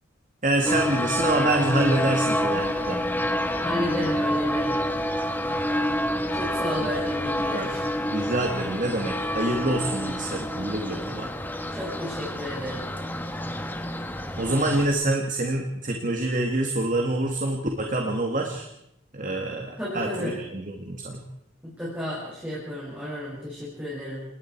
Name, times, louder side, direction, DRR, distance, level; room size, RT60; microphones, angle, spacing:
voice 1, 0.4-3.0 6.8-6.9 7.5-7.7 8.1-11.3 14.4-18.7 19.1-21.2, right 2 dB, 40° right, 2 dB, 2.1 m, -26 dB
sound 1, 0.6-14.9, left 1 dB, 10° left, 1.4 m, -28 dB
voice 2, 3.6-4.8 6.3-7.8 11.7-12.9 19.8-20.4 21.6-24.3, left 1 dB, 5° right, -8 dB, 6.8 m, -32 dB
28.5 x 20.0 x 4.7 m, 0.81 s
head